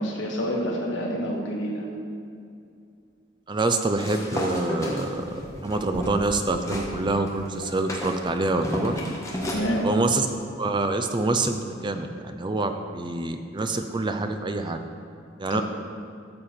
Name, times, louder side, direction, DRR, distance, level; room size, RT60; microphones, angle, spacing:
voice 1, 0.0-1.9 9.5-9.9 15.5-15.6, equal, 80° left, -1 dB, 1.9 m, -28 dB
voice 2, 3.5-5.3 5.6-9.0 9.8-10.3 10.6-14.8 15.4-15.6, right 2 dB, 25° right, 7 dB, 0.6 m, -26 dB
sound 1, 4.0-6.9 7.3-9.7, left 1 dB, 15° left, 1.4 m, -32 dB
13.0 x 7.5 x 4.4 m, 2.4 s
head